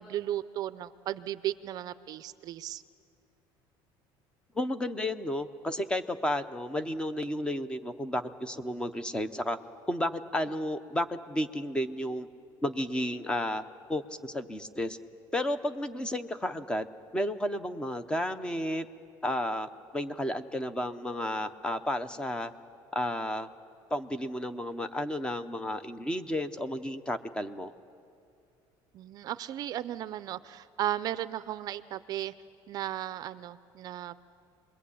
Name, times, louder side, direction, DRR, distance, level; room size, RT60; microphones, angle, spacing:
voice 1, 0.0-2.8 28.9-32.3 32.7-34.2, right 12 dB, 40° right, 14 dB, 0.5 m, -35 dB
voice 2, 4.5-9.6 9.9-12.3 12.6-13.6 13.9-15.0 15.3-16.9 17.1-18.9 19.2-22.5 22.9-23.5 23.9-27.7, left 1 dB, 10° left, 12 dB, 0.7 m, -32 dB
27.5 x 21.5 x 8.5 m, 2.4 s
cardioid pair, 170°, 10 cm